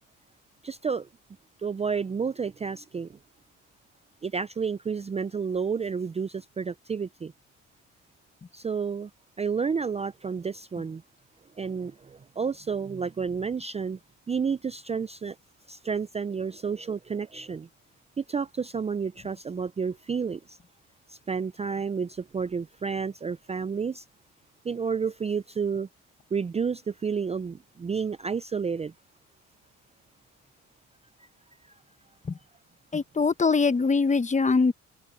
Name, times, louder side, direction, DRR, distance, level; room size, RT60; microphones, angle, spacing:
voice 1, 0.6-1.1 1.6-3.2 4.2-7.3 8.5-9.1 9.4-11.0 11.6-14.0 14.3-15.4 15.7-17.7 18.2-20.6 21.1-24.0 24.6-25.9 26.3-28.9, right 6 dB, 20° right, 0.4 m, -30 dB
voice 2, 32.9-34.7, left 4 dB, 25° left, 1.0 m, -22 dB
cardioid pair, 90°, 30 cm